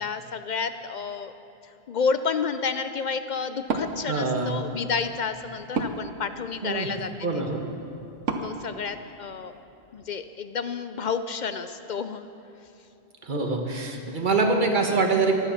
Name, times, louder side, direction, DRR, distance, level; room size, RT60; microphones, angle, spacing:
voice 1, 0.0-1.3 1.9-7.1 8.4-9.5 9.9-12.3, left 5 dB, 55° left, 10 dB, 0.5 m, -30 dB
Wood, 3.6-9.6, right 4 dB, 90° right, 1.3 m, -36 dB
voice 2, 4.1-4.6 6.6-6.9 7.2-7.7 13.2-15.3, right 3 dB, 45° right, 3 dB, 1.4 m, -24 dB
15.5 x 11.0 x 5.7 m, 2.8 s
omnidirectional pair, 1.2 m